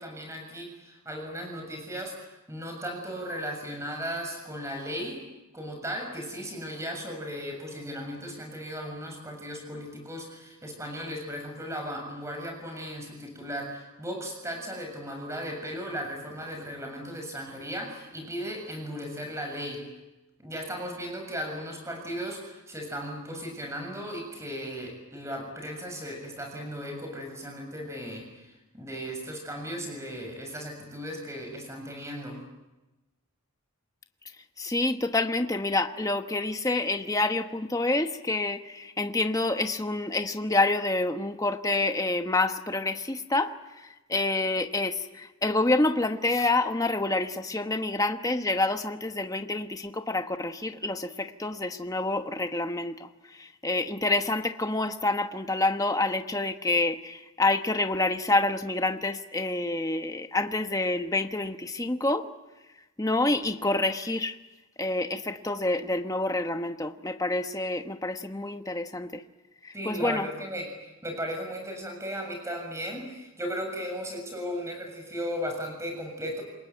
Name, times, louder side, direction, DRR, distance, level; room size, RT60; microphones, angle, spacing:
voice 1, 0.0-5.2 5.5-19.8 20.4-32.4 69.7-76.4, equal, 15° right, 3 dB, 7.0 m, -36 dB
voice 2, 34.6-43.5 43.8-62.3 63.0-64.4 64.8-69.2 69.6-70.3, left 2 dB, 15° left, 7 dB, 1.1 m, -28 dB
27.5 x 22.0 x 9.1 m, 1.0 s
head